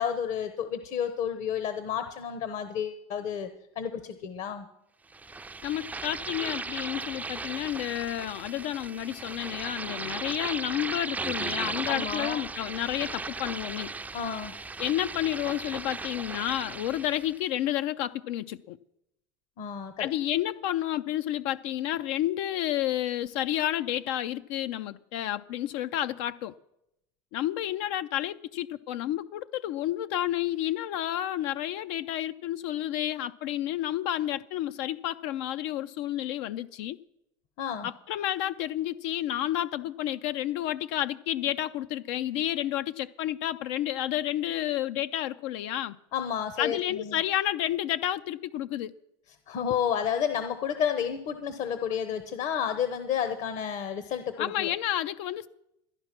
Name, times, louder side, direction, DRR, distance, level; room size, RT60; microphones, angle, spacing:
voice 1, 0.0-3.5 3.8-4.7 11.9-12.4 14.1-14.5 19.6-20.1 37.6-37.9 46.1-47.2 49.5-54.7, left 8 dB, 50° left, 0.9 m, -31 dB
sound 1, 5.1-17.4, right 3 dB, 10° right, 0.4 m, -36 dB
voice 2, 5.6-13.9 14.8-18.8 20.0-26.5 27.3-37.0 37.8-46.0 46.6-49.0 54.4-55.5, left 12 dB, 70° left, 0.5 m, -30 dB
12.5 x 10.5 x 5.9 m
supercardioid pair, 105°, 15 cm